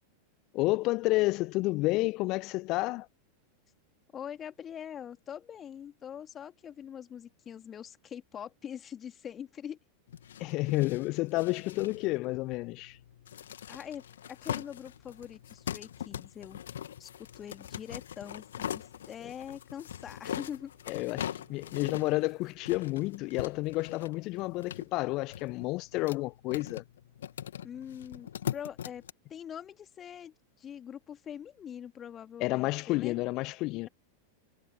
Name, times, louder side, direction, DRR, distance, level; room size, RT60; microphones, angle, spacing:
voice 1, 0.5-3.1 10.4-13.0 20.9-26.8 32.4-33.9, left 21 dB, 40° left, 0.7 m, -30 dB
voice 2, 4.1-9.8 13.7-16.6 17.0-20.7 27.6-29.0 29.3-33.2, left 9 dB, 25° left, 2.8 m, -43 dB
sound 1, 10.1-29.1, left 10 dB, 65° left, 2.5 m, -42 dB
sound 2, 14.3-26.3, right 13 dB, 30° right, 7.6 m, -67 dB
figure-of-eight pair, 90°, 0 cm